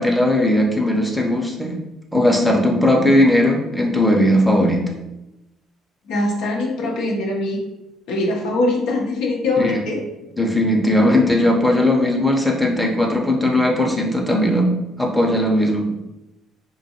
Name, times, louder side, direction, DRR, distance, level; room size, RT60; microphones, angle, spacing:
voice 1, 0.0-1.8 2.1-4.8 9.6-9.8 10.4-14.7 15.0-15.9, left 1 dB, ahead, 0 dB, 0.6 m, -18 dB
voice 2, 6.1-7.6 8.1-10.0, left 2 dB, 70° left, -1 dB, 0.5 m, -22 dB
2.5 x 2.3 x 2.7 m, 0.93 s
hypercardioid pair, 55°, 0 cm